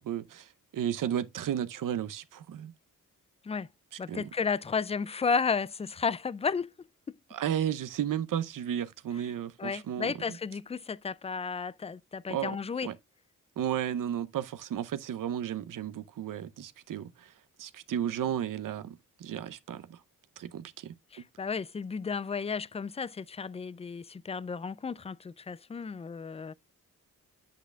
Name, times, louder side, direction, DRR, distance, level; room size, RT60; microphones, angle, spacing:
voice 1, 0.0-2.7 3.9-4.3 7.3-10.4 12.3-12.6 12.8-12.9 13.6-17.3 17.6-20.0 20.4-20.9, right 10 dB, 75° right, 0.6 m, -33 dB
voice 2, 4.0-6.7 9.6-12.9 21.1-26.5, left 5 dB, 20° left, 0.3 m, -33 dB
8.4 x 8.0 x 2.3 m
cardioid pair, 55°, 33 cm